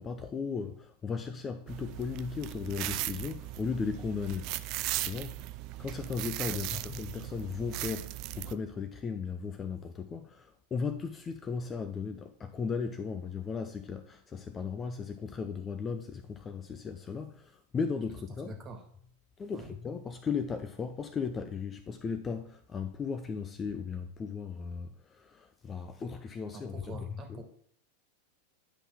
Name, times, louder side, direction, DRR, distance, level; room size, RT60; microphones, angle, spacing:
voice 1, 0.0-4.5 5.0-5.5 5.8-18.5 19.4-27.4, left 5 dB, 20° left, 0.5 m, -36 dB
sound 1, 1.7-8.5, right 16 dB, 40° right, 0.3 m, -38 dB
voice 2, 6.5-6.8 18.4-18.8 19.5-19.7 26.5-27.4, right 3 dB, 25° right, 1.7 m, -45 dB
10.0 x 5.5 x 3.5 m
figure-of-eight pair, 90°, 0 cm